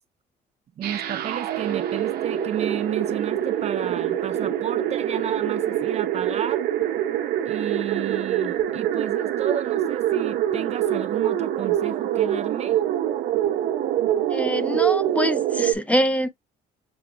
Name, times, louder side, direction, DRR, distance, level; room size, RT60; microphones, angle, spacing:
voice 1, 0.8-6.7 7.5-12.8, right 9 dB, 40° right, 0.4 m, -32 dB
sound 1, 0.8-15.7, right 11 dB, 65° right, 0.7 m, -25 dB
voice 2, 14.3-16.3, equal, 10° left, 0.6 m, -24 dB
6.9 x 2.4 x 2.6 m
cardioid pair, 110°, 17 cm